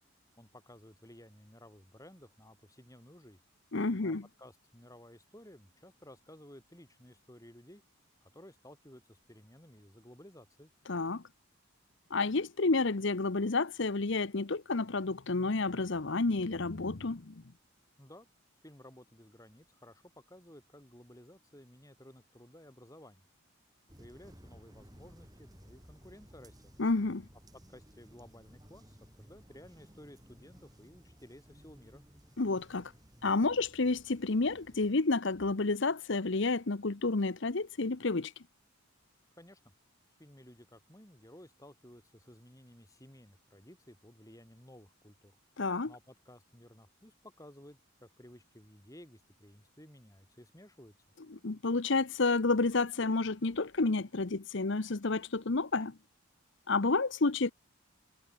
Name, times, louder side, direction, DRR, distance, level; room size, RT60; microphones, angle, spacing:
voice 1, 0.4-3.4 3.9-7.8 8.2-10.7 18.0-18.3 18.6-23.2 24.0-26.7 27.7-32.0 39.4-39.6 40.2-45.4 45.9-50.9, left 1 dB, 15° left, 4.2 m, -55 dB
voice 2, 3.7-4.3 10.9-11.2 12.1-17.4 26.8-27.2 32.4-32.9 33.2-38.3 45.6-45.9 51.3-56.0 56.7-57.5, left 3 dB, 55° left, 0.9 m, -30 dB
sound 1, 23.9-34.9, equal, 20° right, 6.1 m, -57 dB
head